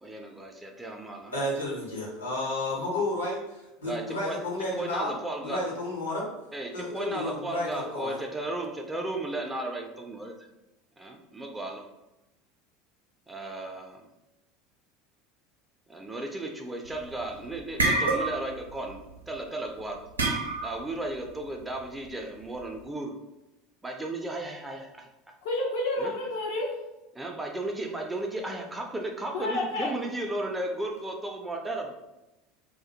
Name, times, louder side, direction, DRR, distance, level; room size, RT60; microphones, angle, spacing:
voice 1, 0.0-1.3 3.8-4.4 4.8-5.6 6.5-10.5 11.0-11.9 13.3-14.1 15.9-19.0 19.3-20.0 20.6-23.1 23.8-25.1 26.0-26.1 27.1-31.9, right 2 dB, 10° right, 2 dB, 0.4 m, -35 dB
voice 2, 1.3-5.1 5.4-6.2 6.7-8.2, left 1 dB, 85° left, -4 dB, 0.8 m, -32 dB
sound 1, 16.9-17.2 17.5-18.6 18.9-19.2 20.2-20.9, right 2 dB, 85° right, 0.4 m, -27 dB
voice 3, 25.4-26.7 29.3-29.9, left 2 dB, 65° left, -1 dB, 0.4 m, -29 dB
2.2 x 2.1 x 2.7 m, 0.98 s
figure-of-eight pair, 75°, 0 cm